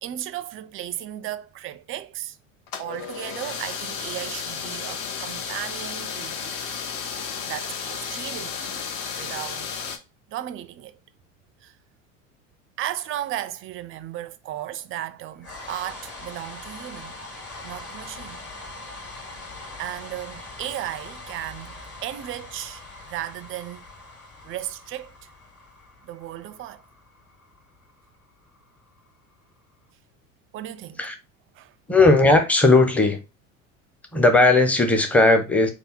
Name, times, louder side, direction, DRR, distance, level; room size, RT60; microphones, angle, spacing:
voice 1, 0.0-2.4 2.8-6.7 7.5-8.8 9.2-9.8 10.3-11.0 11.6-11.7 12.8-17.2 17.6-18.4 19.8-23.9 24.4-25.1 26.0-26.8 30.5-31.0 31.5-31.7, right 13 dB, 35° right, 0.4 m, -35 dB
sound 1, 2.7-10.0, left 6 dB, 50° left, 0.8 m, -33 dB
sound 2, 15.4-29.5, left 2 dB, 35° left, 2.0 m, -42 dB
voice 2, 31.9-33.2 34.1-35.7, left 2 dB, 5° left, 0.6 m, -17 dB
3.4 x 2.1 x 4.3 m
hypercardioid pair, 80°, 41 cm